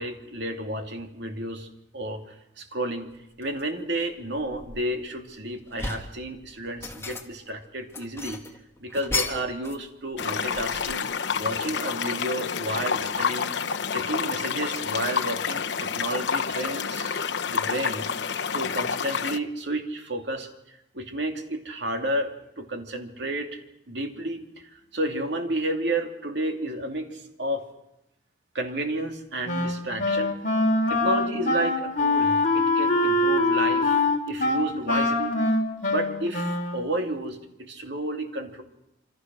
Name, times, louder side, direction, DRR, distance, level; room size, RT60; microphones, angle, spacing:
voice 1, 0.0-1.7 1.9-3.1 3.4-8.4 8.8-11.1 11.4-13.5 13.9-18.1 18.5-23.6 23.9-27.6 28.5-30.4 30.9-35.3 35.9-38.6, right 1 dB, 65° right, 4 dB, 2.9 m, -31 dB
sound 1, 3.4-3.7 4.2-5.2 5.5-6.2 6.6-7.5 7.9-9.9 10.1-11.1, left 4 dB, 15° left, 1.8 m, -34 dB
sound 2, 10.2-19.4, left 6 dB, 70° left, 1.0 m, -28 dB
Wind instrument woodwind instrument, 29.5-36.9, left 2 dB, 40° left, 3.3 m, -24 dB
27.0 x 25.5 x 6.3 m, 0.87 s
head